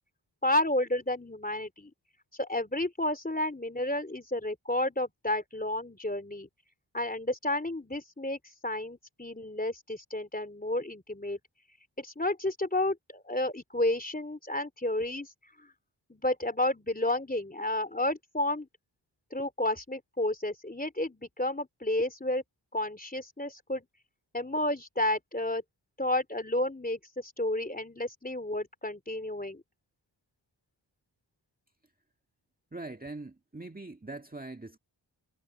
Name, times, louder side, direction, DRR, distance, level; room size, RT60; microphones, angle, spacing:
voice 1, 0.4-1.9 2.4-6.5 6.9-11.4 12.0-15.3 15.6-15.7 16.1-18.7 19.3-22.4 22.7-23.8 24.3-25.6 26.0-29.6, left 1 dB, 20° left, 3.3 m, -31 dB
voice 2, 32.7-34.8, right 2 dB, 20° right, 1.8 m, -42 dB
cardioid pair, 40°, 47 cm